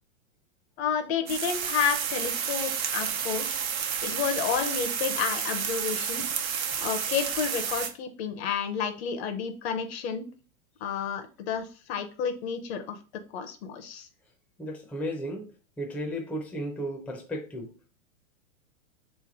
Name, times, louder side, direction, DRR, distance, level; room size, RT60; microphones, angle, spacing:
voice 1, 0.8-6.2 6.8-10.2 10.8-13.0 13.3-14.1, left 7 dB, 50° left, 8 dB, 0.8 m, -31 dB
sound 1, 1.3-7.9, right 7 dB, 85° right, 0.9 m, -30 dB
voice 2, 14.6-15.4 15.8-17.7, equal, 5° left, 0 dB, 0.5 m, -34 dB
3.3 x 3.2 x 4.8 m, 0.37 s
hypercardioid pair, 125°, 40 cm